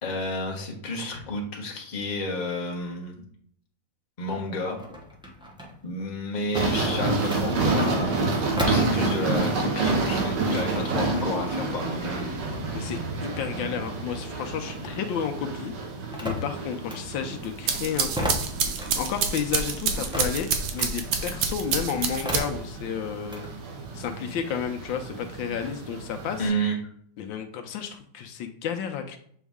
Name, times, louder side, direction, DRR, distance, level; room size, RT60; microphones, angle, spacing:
voice 1, 0.0-3.3 4.2-4.8 5.8-12.4 26.4-26.8, left 1 dB, 30° left, -1 dB, 1.0 m, -31 dB
sound 1, 4.6-9.8 10.1-14.9 15.2-23.5, left 1 dB, 5° right, 0.4 m, -36 dB
sound 2, 6.5-26.5, right 3 dB, 65° right, 1.6 m, -30 dB
voice 2, 12.7-15.7 16.2-23.5 23.9-26.5 27.2-29.2, left 8 dB, 75° left, 5 dB, 1.3 m, -32 dB
sound 3, 17.4-22.8, right 6 dB, 90° right, 1.6 m, -28 dB
7.2 x 4.0 x 3.5 m, 0.62 s
omnidirectional pair, 2.2 m